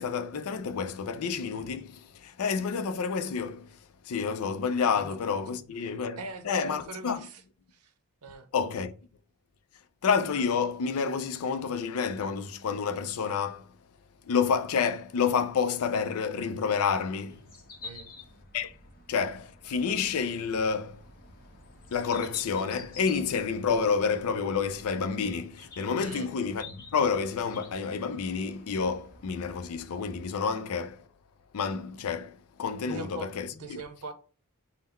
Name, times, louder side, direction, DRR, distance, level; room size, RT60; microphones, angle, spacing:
voice 1, 0.0-3.8 4.0-6.2 6.4-7.2 8.5-8.9 10.0-13.7 14.2-17.4 18.5-18.7 19.1-21.0 21.9-31.0 31.5-33.8, left 6 dB, 75° left, 0.4 m, -29 dB
voice 2, 6.2-7.4 7.7-7.9 8.2-8.5 17.8-18.1 26.0-26.3 32.9-33.3 33.6-34.1, right 3 dB, 90° right, 0.6 m, -41 dB
sound 1, 17.3-30.3, left 3 dB, 40° left, 0.9 m, -50 dB
3.7 x 2.1 x 4.2 m
head